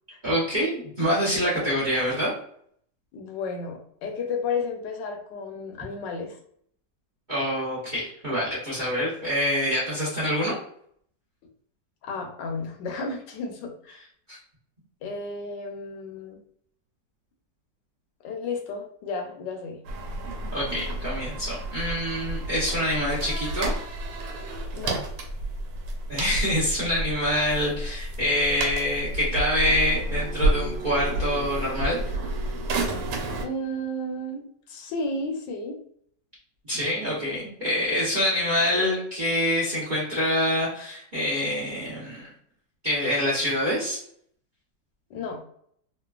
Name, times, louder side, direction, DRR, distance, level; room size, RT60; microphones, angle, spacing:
voice 1, 0.2-2.3 7.3-10.6 14.3-14.4 20.5-23.7 26.1-32.5 36.7-42.3 42.8-44.0, equal, 40° right, -7 dB, 0.7 m, -26 dB
voice 2, 3.1-6.4 12.0-14.0 15.0-16.4 18.2-19.8 24.7-25.0 33.4-35.8 45.1-45.4, left 3 dB, 80° left, 3 dB, 1.3 m, -32 dB
sound 1, 19.8-33.5, right 1 dB, 90° right, 1.3 m, -30 dB
3.1 x 2.2 x 2.3 m, 0.65 s
omnidirectional pair, 1.9 m